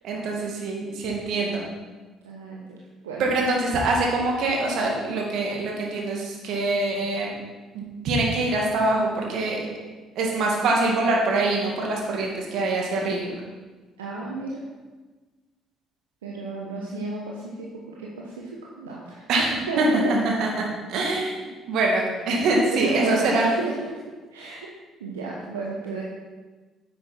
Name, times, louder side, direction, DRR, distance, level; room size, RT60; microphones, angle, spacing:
voice 1, 0.0-1.6 3.2-7.4 7.7-9.6 10.2-13.3 19.3-23.5, right 2 dB, 60° right, -1 dB, 2.3 m, -24 dB
voice 2, 2.2-2.6 3.0-3.2 14.0-14.6 16.2-18.5 18.8-19.2 19.7-20.0 22.7-23.7 24.3-24.7 25.0-26.0, right 3 dB, 80° right, -4 dB, 1.1 m, -32 dB
9.9 x 8.3 x 4.4 m, 1.3 s
figure-of-eight pair, 50°, 0 cm